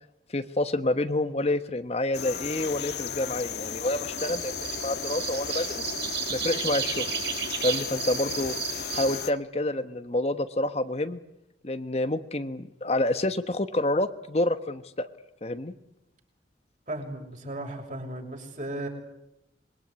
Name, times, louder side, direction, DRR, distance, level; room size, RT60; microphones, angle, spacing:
voice 1, 0.3-5.8 6.3-7.1 7.6-8.5 8.9-11.2 11.6-15.1 15.4-15.7, left 1 dB, 35° left, 10 dB, 1.1 m, -28 dB
sound 1, 2.1-9.3, left 7 dB, 65° left, 1.4 m, -35 dB
sound 2, 4.2-9.2, right 8 dB, 60° right, 6.0 m, -33 dB
voice 2, 16.9-18.9, right 1 dB, 45° right, 2 dB, 6.6 m, -35 dB
27.0 x 22.5 x 9.7 m, 0.84 s
head